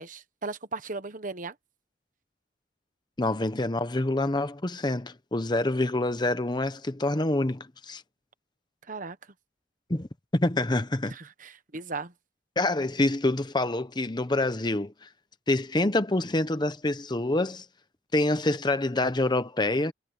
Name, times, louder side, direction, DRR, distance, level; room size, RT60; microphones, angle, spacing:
voice 1, 0.0-1.5 8.9-9.2 11.1-12.1, right 3 dB, 45° right, 1.2 m, -37 dB
voice 2, 3.2-8.0 9.9-11.1 12.6-15.1 15.5-17.6 18.1-19.9, left 2 dB, 25° left, 0.9 m, -26 dB
head